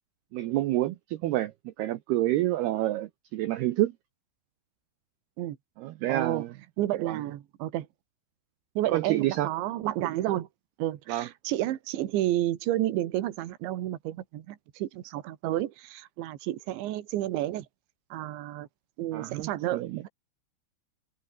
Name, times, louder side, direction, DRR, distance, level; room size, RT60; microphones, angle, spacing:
voice 1, 0.3-3.9 5.8-6.5 7.1-7.2 8.9-9.5 11.1-11.3 19.1-20.0, right 15 dB, 90° right, 2.2 m, -28 dB
voice 2, 6.1-6.5 6.8-7.9 8.8-10.5 10.8-17.7 18.1-18.7 19.0-20.1, right 14 dB, 70° right, 3.8 m, -31 dB
omnidirectional pair, 5.9 m